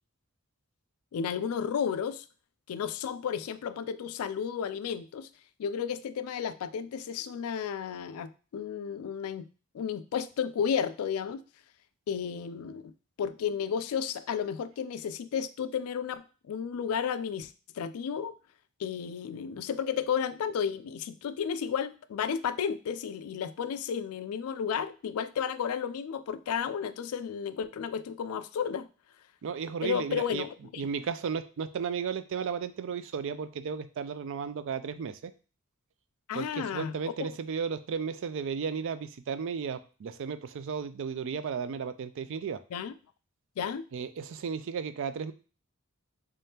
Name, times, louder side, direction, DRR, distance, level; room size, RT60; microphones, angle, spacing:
voice 1, 1.1-2.2 2.7-5.3 5.6-9.5 9.7-11.4 12.1-12.9 13.2-18.3 18.8-28.9 29.8-30.8 36.3-37.0 42.7-42.9 43.6-43.8, left 7 dB, 90° left, 13 dB, 0.3 m, -33 dB
voice 2, 29.4-30.5 30.8-35.3 36.3-42.6 43.9-45.3, right 6 dB, 60° right, 12 dB, 0.4 m, -34 dB
3.7 x 3.5 x 2.8 m, 0.36 s
head